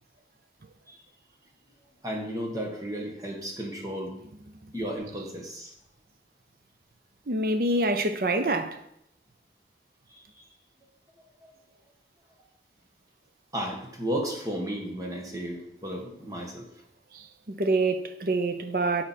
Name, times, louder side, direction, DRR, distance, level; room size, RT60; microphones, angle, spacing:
voice 1, 2.0-4.1 4.7-5.7 10.1-10.2 11.4-11.5 13.5-16.7, equal, 20° right, 1.4 m, -33 dB
voice 2, 7.3-8.8 17.5-19.0, right 2 dB, 55° right, 0.7 m, -26 dB
9.9 x 4.3 x 4.3 m
head